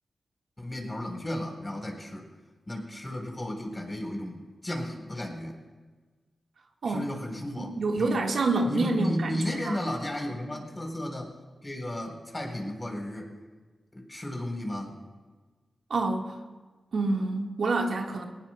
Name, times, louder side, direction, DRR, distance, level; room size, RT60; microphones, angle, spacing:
voice 1, 0.6-2.3 2.7-5.6 6.9-8.2 8.7-11.3 11.6-13.3 13.9-15.0, left 1 dB, 25° left, 2 dB, 3.7 m, -34 dB
voice 2, 7.6-9.8 15.9-16.3 16.9-18.2, right 3 dB, 80° right, 1 dB, 1.5 m, -27 dB
20.5 x 18.5 x 2.2 m, 1.4 s
cardioid pair, 55°, 0 cm